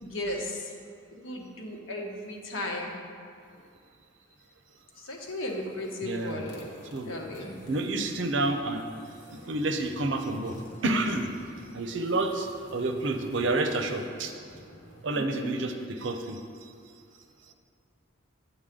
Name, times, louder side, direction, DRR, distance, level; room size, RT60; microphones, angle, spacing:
voice 1, 0.0-0.7 1.2-2.9 5.0-6.7 7.0-7.5 15.1-15.5, left 1 dB, 90° left, 0 dB, 1.4 m, -35 dB
sound 1, 5.4-15.2, equal, 70° left, 1.6 m, -48 dB
voice 2, 6.0-6.4 6.9-7.1 7.7-8.8 9.5-10.6 10.8-11.3 11.7-14.3 15.0-16.4, right 2 dB, 70° right, 6 dB, 0.7 m, -29 dB
9.3 x 8.1 x 3.8 m, 2.4 s
head